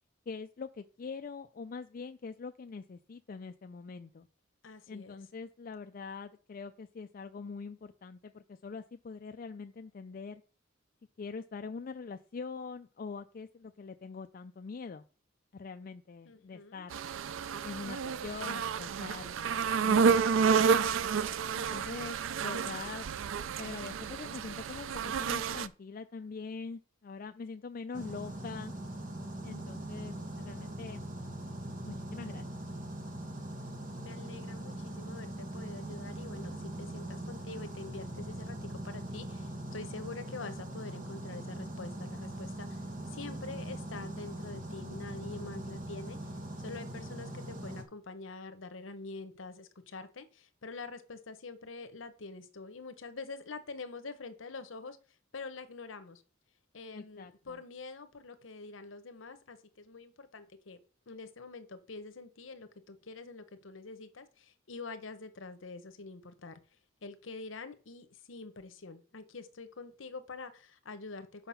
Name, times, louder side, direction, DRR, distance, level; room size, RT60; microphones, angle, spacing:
voice 1, 0.3-4.3 4.9-10.4 11.2-15.1 15.5-17.0 17.6-19.4 19.8-20.7 21.5-23.1 23.6-28.7 29.4-31.0 31.8-32.4 56.9-57.6, left 5 dB, 45° left, 7 dB, 0.4 m, -43 dB
voice 2, 4.6-5.1 16.3-16.9 33.9-42.8 43.1-55.0 55.3-56.2 56.7-60.8 61.1-66.6 67.0-71.5, left 3 dB, 80° left, 10 dB, 0.9 m, -46 dB
sound 1, 16.9-25.7, right 6 dB, 80° right, 0.4 m, -30 dB
sound 2, 27.9-47.8, right 1 dB, 45° right, 1.1 m, -41 dB
5.8 x 5.4 x 5.7 m, 0.37 s
head